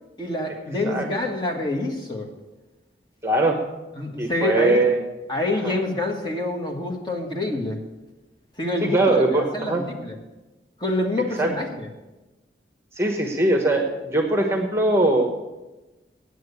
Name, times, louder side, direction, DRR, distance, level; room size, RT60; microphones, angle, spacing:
voice 1, 0.2-2.3 4.0-4.8 5.3-7.8 8.6-10.1 10.8-11.9, left 2 dB, 25° left, 2 dB, 1.5 m, -27 dB
voice 2, 3.2-3.6 4.2-5.0 5.6-5.7 8.8-9.8 11.4-11.5 12.9-15.3, right 2 dB, 15° right, 3 dB, 1.0 m, -21 dB
9.2 x 8.1 x 8.1 m, 1.1 s
head